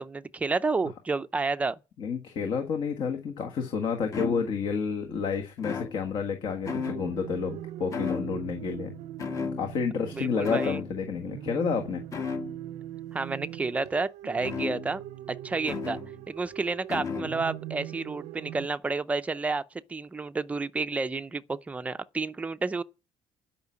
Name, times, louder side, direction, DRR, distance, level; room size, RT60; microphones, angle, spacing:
voice 1, 0.0-1.8 10.1-10.8 13.1-15.0 15.3-16.0 16.3-19.6 19.9-22.8, right 3 dB, 15° right, 0.5 m, -30 dB
voice 2, 2.0-8.9 9.6-12.0, left 5 dB, 50° left, 1.4 m, -30 dB
sound 1, 4.1-4.8 5.6-6.4 6.7-7.4 7.9-8.7 9.2-10.1 10.4-11.0 12.1-12.7 14.4-15.1 15.7-16.2 16.9-17.5, left 6 dB, 30° left, 1.3 m, -35 dB
sound 2, 6.7-18.7, right 14 dB, 80° right, 0.6 m, -41 dB
12.0 x 5.7 x 8.5 m
cardioid pair, 160°, 11 cm